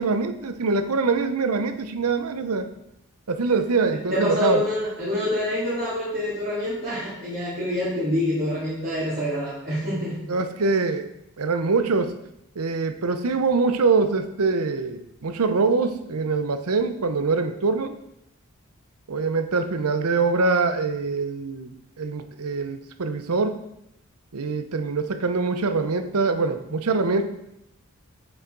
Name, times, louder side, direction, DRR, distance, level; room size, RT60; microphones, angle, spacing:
voice 1, 0.0-2.7 3.3-4.6 10.3-11.1 11.4-12.2 12.6-17.9 19.1-23.6 24.3-27.3, right 4 dB, 90° right, 10 dB, 0.7 m, -24 dB
voice 2, 3.9-10.2, left 1 dB, 40° right, -12 dB, 2.8 m, -26 dB
8.0 x 7.0 x 3.9 m, 0.84 s
head